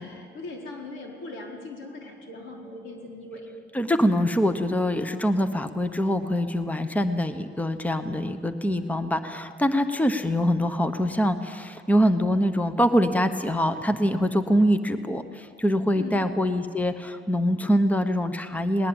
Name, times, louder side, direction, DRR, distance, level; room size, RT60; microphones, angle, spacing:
voice 1, 0.0-3.5 15.9-16.2, left 2 dB, 85° left, 0 dB, 4.7 m, -39 dB
voice 2, 3.7-18.9, equal, 5° left, 9 dB, 1.1 m, -24 dB
20.0 x 19.5 x 8.9 m, 2.2 s
cardioid pair, 90°, 20 cm